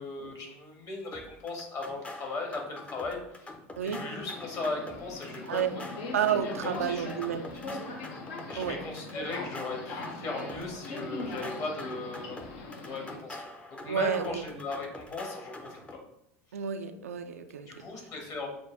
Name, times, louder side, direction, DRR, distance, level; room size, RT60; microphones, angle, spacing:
voice 1, 0.0-3.5 3.8-5.9 6.4-7.1 7.4-7.8 8.5-12.4 12.8-16.0 17.7-18.5, left 3 dB, 45° left, 1 dB, 1.5 m, -38 dB
sound 1, 1.1-16.0, left 1 dB, 15° left, 0.6 m, -45 dB
Subway metro underground, 4.3-13.2, left 3 dB, 65° left, 0.8 m, -41 dB
voice 2, 6.1-7.5 8.6-8.8 13.8-14.4 16.5-17.7, right 8 dB, 90° right, 7 dB, 0.4 m, -30 dB
6.1 x 2.2 x 3.4 m, 0.80 s
hypercardioid pair, 80°, 8 cm